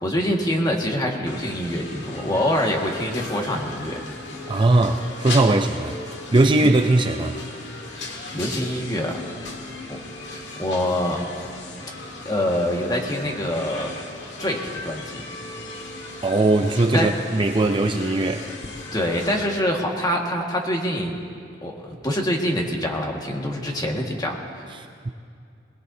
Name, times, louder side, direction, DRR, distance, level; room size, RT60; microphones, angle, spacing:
voice 1, 0.0-4.0 6.6-6.7 7.9-9.2 9.9-11.3 12.3-13.9 14.4-15.2 16.9-17.1 18.9-21.2 21.6-24.4, left 1 dB, 20° left, 0 dB, 1.7 m, -25 dB
sound 1, 1.3-19.5, left 2 dB, 75° left, 1.7 m, -37 dB
voice 2, 4.5-6.0 6.3-7.4 16.2-18.5 24.7-25.1, right 2 dB, 25° right, 5 dB, 0.5 m, -20 dB
21.0 x 20.0 x 2.8 m, 2.3 s
head